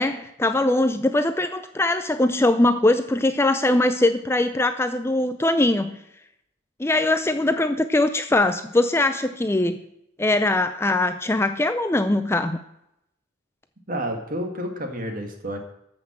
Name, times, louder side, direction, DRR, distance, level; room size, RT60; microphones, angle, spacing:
voice 1, 0.0-6.0 6.8-9.8 10.2-12.6, left 2 dB, 15° left, 9 dB, 0.4 m, -21 dB
voice 2, 13.9-15.6, equal, 45° right, 4 dB, 1.9 m, -30 dB
13.5 x 5.9 x 7.4 m, 0.80 s
head